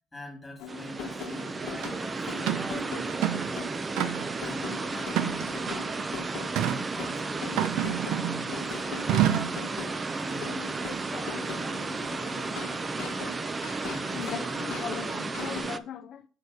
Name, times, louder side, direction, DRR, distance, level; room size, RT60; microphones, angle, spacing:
voice 1, 0.1-3.9 4.4-6.2 6.6-7.8 8.2-9.7 10.1-13.3 13.9-14.7, left 2 dB, 5° left, 2.2 m, -45 dB
sound 1, 0.6-15.6, left 7 dB, 85° left, 1.1 m, -42 dB
sound 2, 0.7-15.8, right 3 dB, 20° right, 0.5 m, -33 dB
sound 3, 1.8-1.9 2.5-2.7 3.1-3.5 4.0-4.4 5.1-5.8 6.5-6.8 7.6-8.4 9.1-9.6, right 11 dB, 75° right, 0.7 m, -27 dB
voice 2, 14.1-16.3, left 9 dB, 50° left, 0.4 m, -38 dB
6.5 x 4.5 x 4.9 m
cardioid pair, 145°, 0 cm